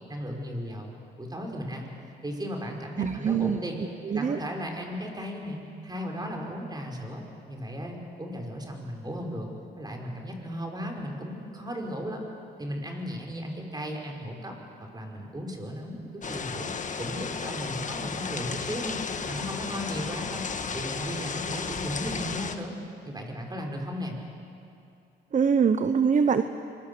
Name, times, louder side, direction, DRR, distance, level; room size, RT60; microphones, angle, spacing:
voice 1, 0.1-1.9 2.2-3.8 4.1-9.5 9.8-12.2 12.6-14.5 14.8-16.7 17.0-20.4 20.7-22.7 23.0-24.2, equal, 20° right, 1 dB, 5.1 m, -36 dB
voice 2, 3.0-3.6 4.1-4.4 25.3-26.4, right 6 dB, 40° right, 10 dB, 0.9 m, -23 dB
sound 1, 16.2-22.6, left 5 dB, 40° left, 1.5 m, -34 dB
25.5 x 22.5 x 7.0 m, 2.6 s
cardioid pair, 90°, 20 cm